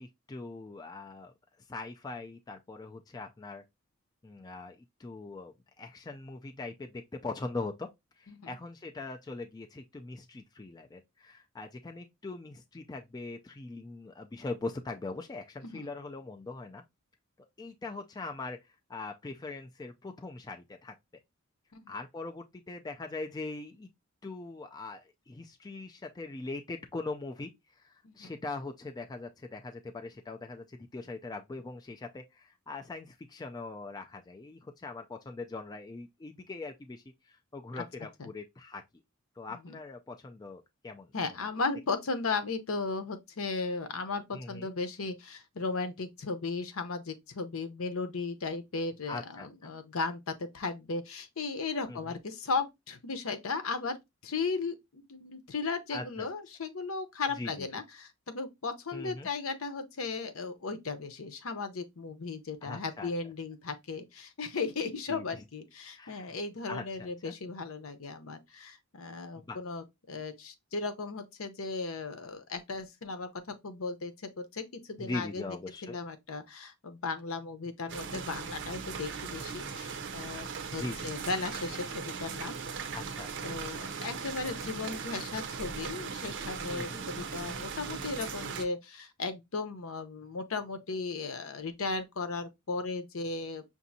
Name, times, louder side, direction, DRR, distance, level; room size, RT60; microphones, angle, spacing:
voice 1, 0.0-1.3 1.7-3.6 4.2-7.9 8.2-16.8 17.6-20.9 21.9-23.9 24.2-38.8 39.4-41.4 44.3-44.7 49.1-49.7 51.9-52.2 55.9-56.3 57.4-57.7 58.9-59.3 62.6-63.1 65.1-65.2 65.9-66.4 66.7-67.3 69.4-69.6 75.0-76.0 80.8-81.1 82.9-83.5 86.7-87.3, left 3 dB, 20° left, 0.4 m, -41 dB
voice 2, 41.1-54.0 54.2-75.6 75.8-82.5 83.4-93.6, left 4 dB, 65° left, 0.8 m, -36 dB
sound 1, 77.9-88.7, right 5 dB, 60° right, 0.6 m, -39 dB
5.9 x 2.6 x 2.7 m
head